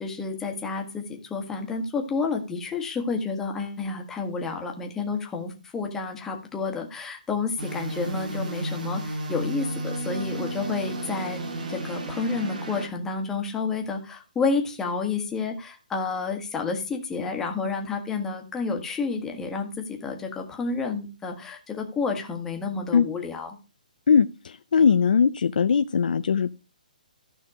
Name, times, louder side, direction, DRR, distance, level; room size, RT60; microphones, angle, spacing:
voice 1, 0.0-11.4 11.7-23.6, left 4 dB, 10° left, 2 dB, 1.5 m, -30 dB
sound 1, 7.6-12.9, right 1 dB, 65° right, 3.9 m, -32 dB
voice 2, 24.1-26.5, left 6 dB, 70° left, 10 dB, 0.6 m, -20 dB
14.0 x 5.7 x 4.9 m, 0.31 s
hypercardioid pair, 165°, 5 cm